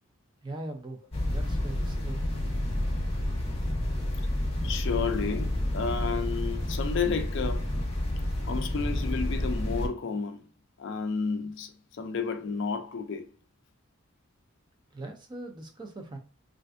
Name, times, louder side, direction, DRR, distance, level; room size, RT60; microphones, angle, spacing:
voice 1, 0.4-2.2 14.9-16.2, right 2 dB, 20° right, 0.4 m, -40 dB
sound 1, 1.1-9.9, left 1 dB, 25° left, 0.7 m, -30 dB
voice 2, 4.6-7.7 8.5-10.4 10.8-13.3, left 5 dB, 55° left, 0.4 m, -31 dB
3.2 x 2.5 x 2.5 m
head